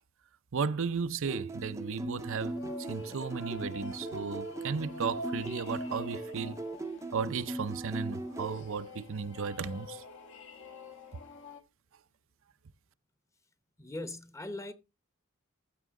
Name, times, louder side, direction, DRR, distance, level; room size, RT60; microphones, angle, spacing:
voice 1, 0.5-6.6 7.1-10.0, right 5 dB, 65° right, 0.6 m, -35 dB
sound 1, 1.2-8.6, right 1 dB, 15° right, 0.6 m, -39 dB
sound 2, 2.2-11.6, equal, 60° left, 1.2 m, -46 dB
voice 2, 13.8-14.7, left 2 dB, 15° left, 0.9 m, -40 dB
14.5 x 6.0 x 3.7 m
head